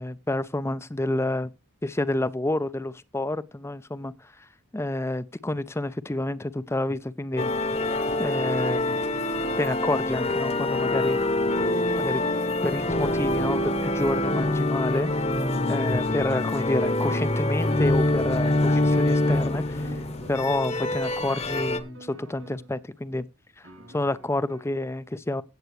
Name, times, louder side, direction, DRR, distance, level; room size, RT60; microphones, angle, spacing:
voice 1, 0.0-1.5 1.8-4.5 4.7-7.5 8.2-9.0 9.6-11.2 12.0-12.2 12.6-15.2 15.7-19.9 20.3-23.3 23.9-25.4, left 1 dB, 10° left, 0.5 m, -29 dB
sound 1, 7.4-21.8, left 2 dB, 30° left, 1.0 m, -25 dB
sound 2, 14.9-22.8 23.6-24.7, right 2 dB, 65° right, 2.8 m, -49 dB
16.0 x 8.0 x 3.1 m
head